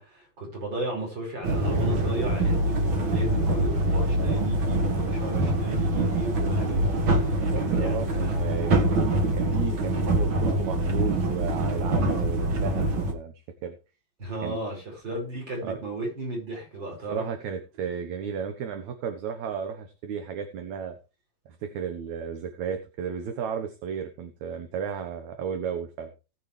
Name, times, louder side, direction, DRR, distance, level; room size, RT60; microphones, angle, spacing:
voice 1, 0.0-7.4 7.8-8.4 14.2-17.2, right 2 dB, 30° right, 6.0 m, -35 dB
sound 1, 1.4-13.1, right 1 dB, 45° right, 1.8 m, -24 dB
voice 2, 7.3-13.3 13.6-13.8 14.4-14.6 15.6-15.8 17.1-21.0 21.5-26.1, right 7 dB, 60° right, 2.2 m, -34 dB
19.5 x 7.0 x 3.3 m
omnidirectional pair, 4.2 m